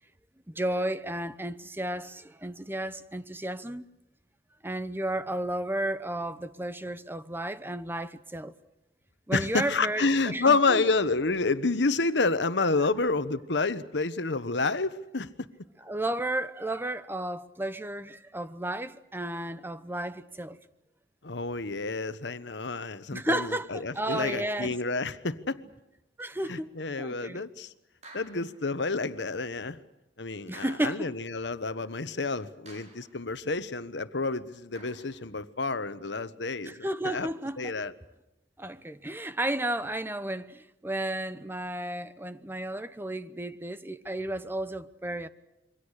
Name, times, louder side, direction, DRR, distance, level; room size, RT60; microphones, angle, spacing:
voice 1, 0.5-3.8 4.6-8.5 9.3-10.8 15.8-20.6 23.1-24.8 26.2-26.7 27.0-27.4 30.5-31.1 36.6-37.7 38.6-45.3, right 1 dB, 15° right, 0.9 m, -33 dB
voice 2, 9.3-15.3 21.2-25.6 26.5-27.7 28.1-29.8 30.2-37.3 37.6-37.9, left 3 dB, 85° left, 1.2 m, -29 dB
sound 1, 24.1-24.7 26.2-26.4 28.0-28.7 30.5-31.2 32.7-33.2 34.7-35.3, right 2 dB, 40° right, 6.3 m, -52 dB
27.5 x 23.5 x 6.6 m
head